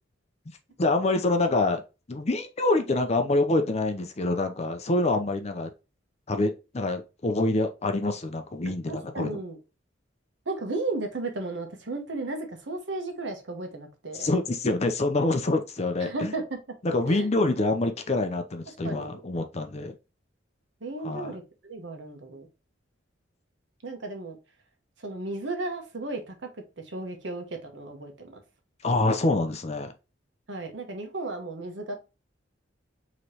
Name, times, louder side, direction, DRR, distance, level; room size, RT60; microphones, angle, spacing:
voice 1, 0.8-1.8 2.1-5.7 6.3-9.4 14.1-16.3 16.8-19.9 21.0-21.4 28.8-29.9, left 2 dB, 35° left, 0.6 m, -26 dB
voice 2, 8.9-9.6 10.5-14.3 16.0-16.6 17.1-17.3 18.8-19.2 20.8-22.5 23.8-24.4 25.0-26.3 26.9-28.4 30.5-31.9, right 2 dB, 70° right, 1.1 m, -34 dB
4.9 x 3.1 x 2.8 m
head